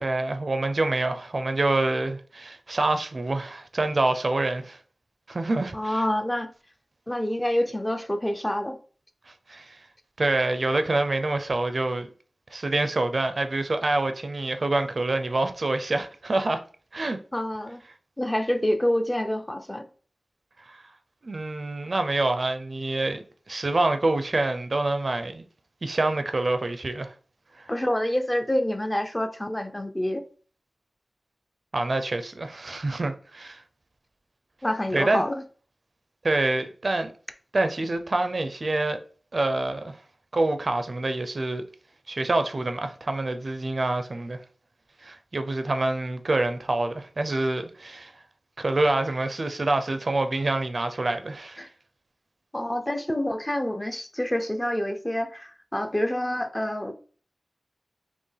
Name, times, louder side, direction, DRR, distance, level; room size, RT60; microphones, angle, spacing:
voice 1, 0.0-4.8 5.3-6.0 9.5-9.8 10.2-12.1 12.5-16.6 16.9-17.2 20.7-20.9 21.2-25.4 25.8-27.1 27.6-27.7 31.7-33.6 34.9-35.2 36.2-37.1 37.5-39.0 39.3-40.0 40.3-41.6 42.1-44.4 45.0-48.1 48.6-51.7, right 2 dB, 55° right, 0.4 m, -26 dB
voice 2, 5.7-6.5 7.1-8.8 17.3-17.8 18.2-19.9 27.7-30.2 34.6-35.3 51.6-51.7 52.5-56.9, left 1 dB, 15° left, 0.5 m, -27 dB
4.4 x 2.9 x 3.3 m
wide cardioid pair, 70°, 0 cm